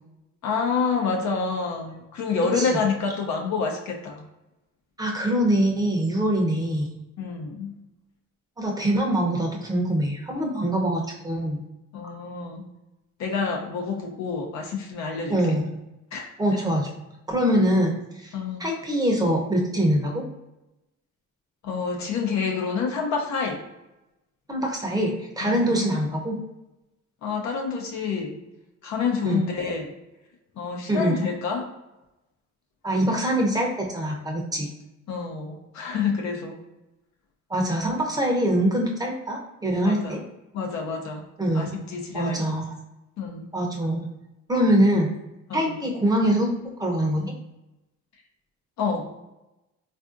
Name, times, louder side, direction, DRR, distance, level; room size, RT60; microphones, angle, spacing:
voice 1, 0.4-4.3 7.2-7.8 11.9-12.6 13.2-15.4 16.1-16.2 16.5-16.6 18.3-18.7 21.6-23.6 25.4-25.9 27.2-28.4 28.8-29.9 30.6-31.7 35.1-36.6 39.8-40.2 40.5-41.2 41.5-42.4 43.2-43.5 45.5-45.8 48.8-49.1, left 5 dB, 65° left, 1 dB, 0.6 m, -28 dB
voice 2, 5.0-6.9 8.6-11.6 15.3-15.7 16.4-16.9 17.3-18.3 18.6-20.3 24.5-26.4 29.2-29.5 30.9-31.2 32.8-34.7 37.5-40.2 41.4-41.8 42.1-42.7 43.5-44.1 44.5-45.1 45.5-47.3, right 1 dB, 15° right, 0 dB, 0.7 m, -24 dB
3.4 x 2.5 x 2.4 m, 0.95 s
cardioid pair, 90°, 30 cm